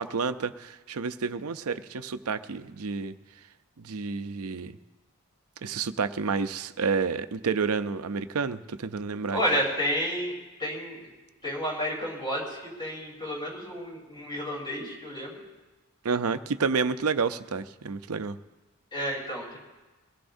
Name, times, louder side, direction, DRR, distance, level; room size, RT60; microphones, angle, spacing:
voice 1, 0.0-3.1 3.8-4.8 5.6-9.4 16.0-18.4, right 5 dB, 75° right, 11 dB, 0.6 m, -29 dB
voice 2, 9.3-10.3 10.6-11.0 11.4-15.4 18.9-19.6, equal, 20° left, -3 dB, 3.7 m, -31 dB
22.5 x 17.0 x 2.7 m, 1.2 s
head